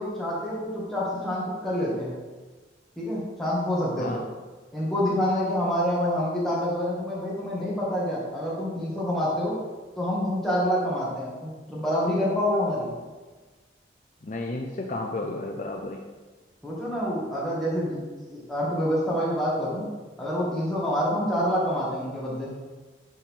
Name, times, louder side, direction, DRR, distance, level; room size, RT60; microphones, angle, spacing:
voice 1, 0.0-2.1 3.0-4.2 4.7-9.6 10.0-12.9 16.6-18.0 18.3-19.9 20.2-22.5, equal, ahead, -8 dB, 2.1 m, -27 dB
voice 2, 14.2-16.0, left 2 dB, 45° left, 1 dB, 0.5 m, -32 dB
11.0 x 4.3 x 3.7 m, 1.3 s
head